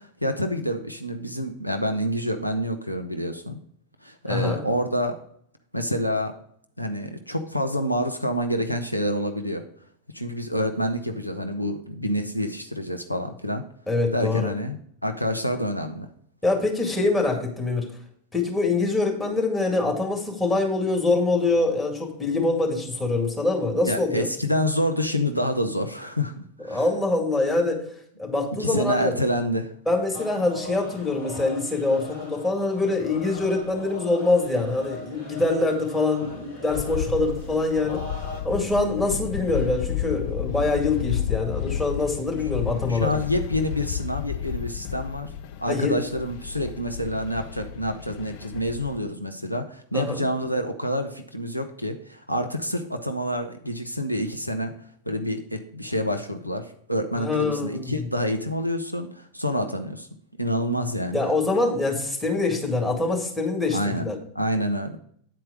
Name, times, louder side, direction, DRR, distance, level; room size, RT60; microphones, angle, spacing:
voice 1, 0.0-3.6 4.0-5.2 5.7-6.3 6.8-9.6 10.1-13.6 14.1-16.1 23.8-26.8 28.6-29.7 39.0-39.2 42.9-45.3 45.6-54.7 55.1-60.1 60.4-61.2 63.7-64.1 64.3-65.0, equal, 90° left, 6 dB, 0.7 m, -27 dB
voice 2, 4.3-4.6 13.9-14.5 16.4-17.9 18.3-24.3 26.7-27.8 28.2-29.1 29.9-38.0 38.4-43.2 45.7-46.0 49.9-50.2 57.1-58.0 61.1-64.2, left 3 dB, 10° left, -1 dB, 2.2 m, -24 dB
sound 1, 30.1-38.4, left 2 dB, 75° left, 2.9 m, -40 dB
sound 2, 36.7-49.0, left 10 dB, 50° left, 0.6 m, -32 dB
9.3 x 4.5 x 5.1 m, 0.63 s
figure-of-eight pair, 90°, 0 cm